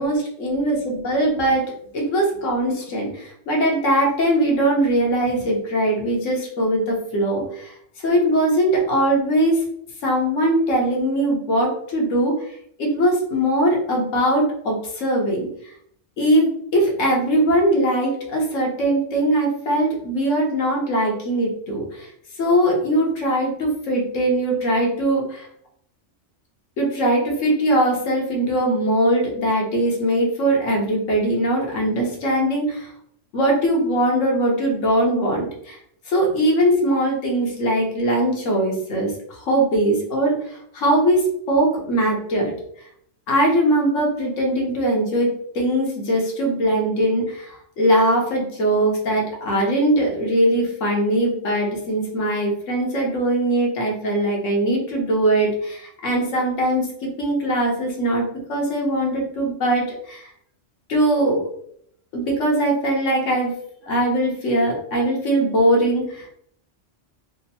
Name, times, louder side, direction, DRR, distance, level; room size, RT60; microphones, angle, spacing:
voice 1, 0.0-7.7 8.0-9.6 10.0-15.7 16.2-22.1 22.4-25.5 26.8-32.9 33.3-35.8 36.1-42.5 43.3-60.3 60.9-61.5 62.1-63.6 63.8-66.3, right 1 dB, 80° left, 0 dB, 1.4 m, -21 dB
3.5 x 2.1 x 4.1 m, 0.68 s
omnidirectional pair, 1.3 m